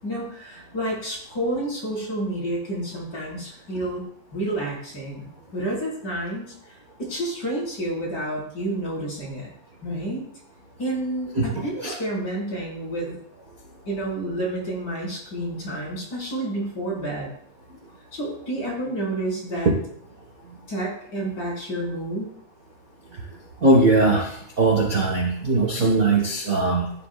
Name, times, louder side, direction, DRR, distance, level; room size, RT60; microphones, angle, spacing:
voice 1, 0.0-4.0 4.3-9.5 9.8-10.2 10.8-13.2 13.9-17.3 18.1-19.7 20.7-22.3, right 1 dB, 30° left, -6 dB, 5.8 m, -29 dB
voice 2, 11.3-11.9 19.6-19.8 23.6-26.9, right 2 dB, 45° right, -1 dB, 1.2 m, -20 dB
15.5 x 10.5 x 2.5 m, 0.64 s
omnidirectional pair, 3.9 m